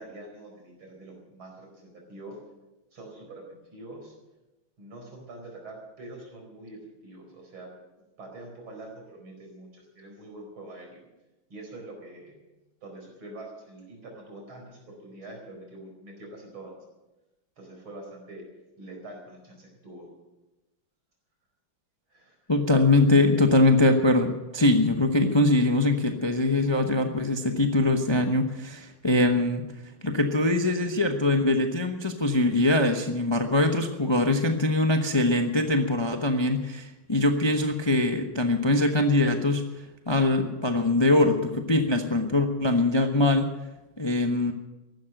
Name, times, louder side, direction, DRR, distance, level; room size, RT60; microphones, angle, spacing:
voice 1, 0.0-2.4 2.9-4.1 4.8-7.7 8.2-11.0 11.5-12.4 12.8-16.8 17.6-18.5 18.8-20.1 22.1-22.4, right 2 dB, 85° right, 2 dB, 5.3 m, -44 dB
voice 2, 22.5-29.7 30.0-39.6 40.1-43.5 44.0-44.5, left 2 dB, 20° left, 5 dB, 0.6 m, -22 dB
15.0 x 12.0 x 7.8 m, 1.0 s
omnidirectional pair, 2.2 m